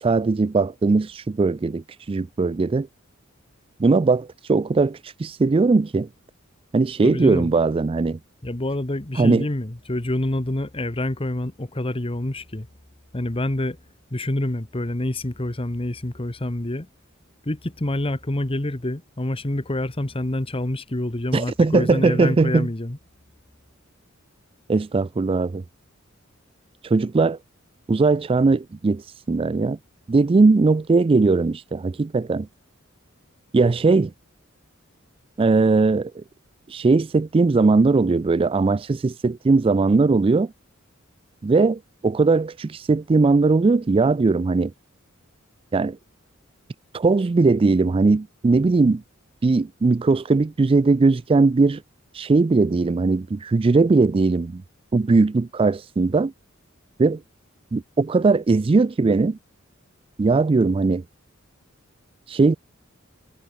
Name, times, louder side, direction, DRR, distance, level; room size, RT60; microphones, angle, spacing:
voice 1, 0.0-2.9 3.8-6.1 6.7-8.2 9.2-9.5 21.3-22.7 24.7-25.6 26.8-27.4 27.9-29.0 29.3-29.8 30.1-32.5 33.5-34.1 35.4-36.2 36.7-40.5 41.4-44.7 45.7-46.0 46.9-49.0 49.4-51.8 52.1-54.6 54.9-56.3 57.0-57.2 57.7-59.4 60.2-61.0 62.3-62.6, right 3 dB, 25° right, 0.3 m, -19 dB
voice 2, 7.0-7.5 8.4-12.7 13.1-13.8 14.1-16.9 17.4-23.0, left 1 dB, 25° left, 1.2 m, -27 dB
head